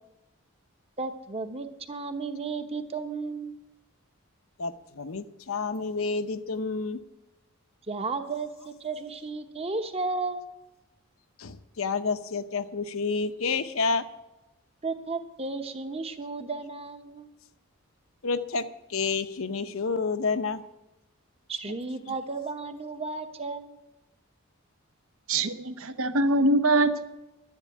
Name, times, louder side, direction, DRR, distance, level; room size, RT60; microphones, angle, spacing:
voice 1, 1.0-3.6 7.9-10.5 14.8-17.3 21.5-23.8, right 3 dB, 25° right, 8 dB, 0.9 m, -34 dB
voice 2, 4.6-7.0 11.4-14.1 18.2-20.6, left 4 dB, 70° left, 10 dB, 0.8 m, -29 dB
voice 3, 25.3-27.0, right 2 dB, 70° right, 10 dB, 0.9 m, -23 dB
11.0 x 10.5 x 8.5 m, 1.0 s
head